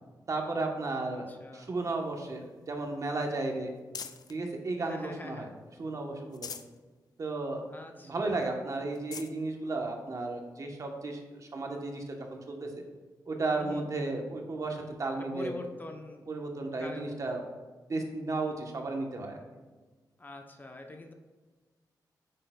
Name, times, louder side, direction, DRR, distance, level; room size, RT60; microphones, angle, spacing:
voice 1, 0.3-1.3 1.5-3.7 4.3-5.5 5.8-6.5 7.2-7.6 8.0-12.8 13.3-15.5 16.3-17.4 17.9-19.4, right 2 dB, 50° right, 3 dB, 1.0 m, -34 dB
voice 2, 1.1-1.7 4.8-5.5 7.7-8.5 13.5-13.9 15.1-16.3 16.7-17.3 20.2-21.1, left 2 dB, 25° left, 4 dB, 0.7 m, -45 dB
sound 1, 1.7-4.4 4.9-5.7 6.1-6.8 7.2-7.3 7.7-7.8 8.4-8.5 8.9-9.4 10.2-10.3 12.0-12.1, left 7 dB, 60° left, 0.4 m, -46 dB
8.4 x 6.5 x 2.3 m, 1.3 s
cardioid pair, 85°, 7 cm